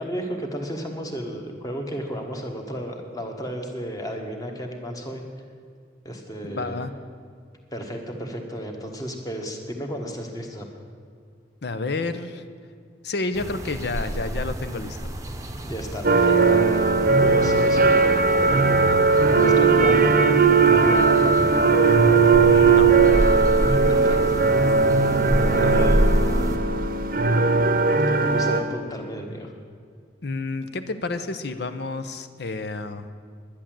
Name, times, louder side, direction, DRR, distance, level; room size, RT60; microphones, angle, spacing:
voice 1, 0.0-5.2 6.0-6.8 7.7-10.7 15.6-21.6 23.7-24.4 25.4-26.1 28.1-29.5, equal, 20° left, 2 dB, 1.4 m, -33 dB
voice 2, 6.4-6.9 11.6-12.4 13.0-15.1 22.4-22.9 30.2-33.1, left 3 dB, 60° left, 10 dB, 0.7 m, -30 dB
sound 1, 13.3-26.6, equal, 20° right, 0.8 m, -28 dB
sound 2, 16.0-28.6, right 4 dB, 50° right, 0.8 m, -18 dB
11.0 x 10.0 x 7.6 m, 2.1 s
head